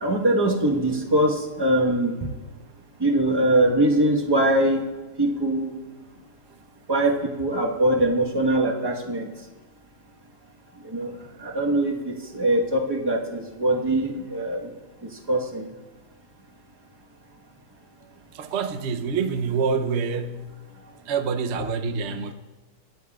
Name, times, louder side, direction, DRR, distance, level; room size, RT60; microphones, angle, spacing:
voice 1, 0.0-2.1 3.0-4.8 5.2-5.7 6.9-9.3 10.9-11.1 11.4-14.6 15.3-15.6, right 1 dB, 15° right, -1 dB, 1.1 m, -22 dB
voice 2, 18.3-20.5 21.1-22.3, right 5 dB, 55° right, 6 dB, 0.8 m, -26 dB
26.5 x 11.0 x 2.4 m, 1.2 s
omnidirectional pair, 1.9 m